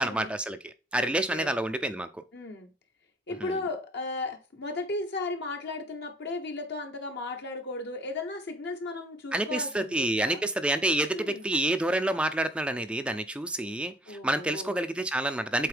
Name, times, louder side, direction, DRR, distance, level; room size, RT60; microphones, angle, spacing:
voice 1, 0.0-2.2 3.4-3.6 9.3-15.7, right 1 dB, 5° right, 0.4 m, -28 dB
voice 2, 1.0-1.5 2.3-2.7 3.3-10.4 11.1-11.5 14.1-14.7, left 2 dB, 55° left, 1.0 m, -35 dB
7.8 x 4.2 x 3.4 m
head